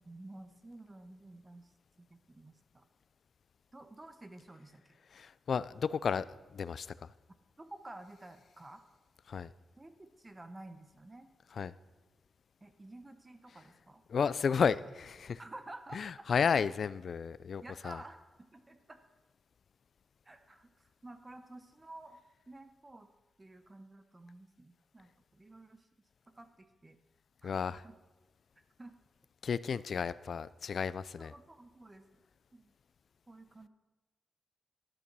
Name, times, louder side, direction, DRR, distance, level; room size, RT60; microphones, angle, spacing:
voice 1, 0.0-1.7 2.0-2.8 3.7-5.0 7.6-8.8 9.8-11.3 12.6-14.0 15.4-16.3 17.6-19.0 20.2-22.2 22.5-23.1 23.4-25.9 26.4-27.0 27.4-27.5 27.8-28.0 28.8-29.0 31.2-32.0 32.5-32.7 33.3-33.7, right 2 dB, 20° right, 8 dB, 0.8 m, -52 dB
voice 2, 5.1-7.1 9.3-9.5 11.5-11.7 14.1-15.4 15.9-18.0 27.4-27.8 29.4-31.3, left 6 dB, 60° left, 17 dB, 0.3 m, -33 dB
11.5 x 6.8 x 6.0 m, 1.2 s
cardioid pair, 100°, 0 cm